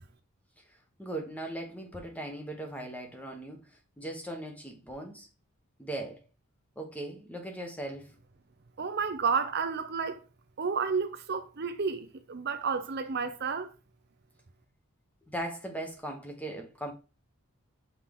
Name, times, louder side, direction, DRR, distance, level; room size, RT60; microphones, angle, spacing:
voice 1, 1.0-5.3 5.8-6.2 6.8-8.1 15.3-16.9, right 1 dB, 5° left, 1.1 m, -39 dB
voice 2, 8.8-10.2 10.6-13.7, right 5 dB, 45° right, 0.6 m, -31 dB
5.8 x 4.5 x 3.6 m
head